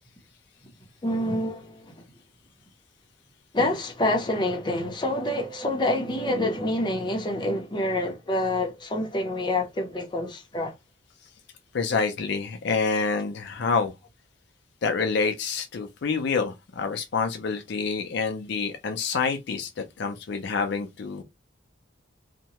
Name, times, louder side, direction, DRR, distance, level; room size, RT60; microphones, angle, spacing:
voice 1, 1.0-1.9 3.5-10.7, left 1 dB, 25° left, 0.7 m, -27 dB
voice 2, 11.7-13.9 14.8-21.2, left 5 dB, 60° left, 0.4 m, -27 dB
2.7 x 2.2 x 2.9 m
head